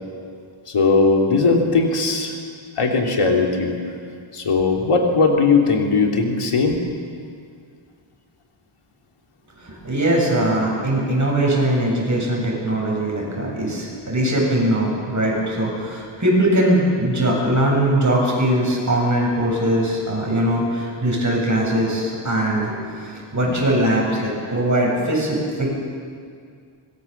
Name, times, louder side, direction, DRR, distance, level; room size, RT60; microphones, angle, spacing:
voice 1, 0.7-2.4 2.8-3.8 4.3-6.8, left 4 dB, 90° left, 1 dB, 2.9 m, -18 dB
voice 2, 9.6-25.7, right 1 dB, 35° right, -3 dB, 7.9 m, -21 dB
24.0 x 21.0 x 7.2 m, 2.2 s
wide cardioid pair, 100°, 50 cm